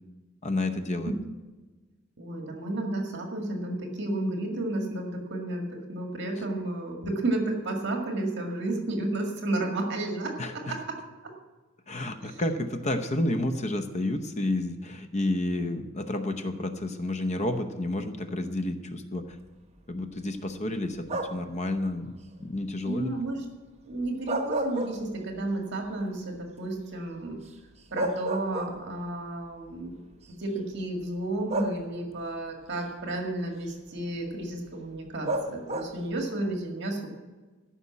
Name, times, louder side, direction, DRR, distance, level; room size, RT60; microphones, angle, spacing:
voice 1, 0.4-1.1 6.4-6.5 10.4-10.7 11.9-19.4 19.9-23.1, left 1 dB, 35° left, 8 dB, 0.8 m, -30 dB
voice 2, 2.2-11.3 12.2-12.4 22.8-23.4 23.8-27.4 27.9-30.1 30.4-37.1, right 2 dB, 60° right, 2 dB, 2.0 m, -32 dB
sound 1, 21.1-21.6 24.1-25.5 25.9-26.0 27.5-27.6 28.0-29.1 30.1-30.2 31.5-32.2 35.3-36.1, right 1 dB, 35° right, 1.1 m, -31 dB
14.0 x 6.0 x 8.4 m, 1.3 s
head